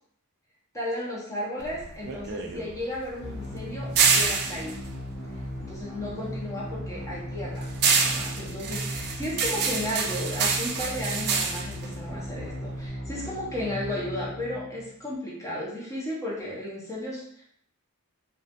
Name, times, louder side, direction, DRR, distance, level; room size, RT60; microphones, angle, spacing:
voice 1, 0.7-4.8 5.6-17.4, left 1 dB, 15° left, -6 dB, 0.5 m, -34 dB
sound 1, 1.6-6.1 6.4-12.9, right 5 dB, 50° right, 0.3 m, -27 dB
sound 2, 3.2-15.1, equal, 65° left, 0.8 m, -37 dB
2.3 x 2.1 x 2.7 m, 0.69 s
head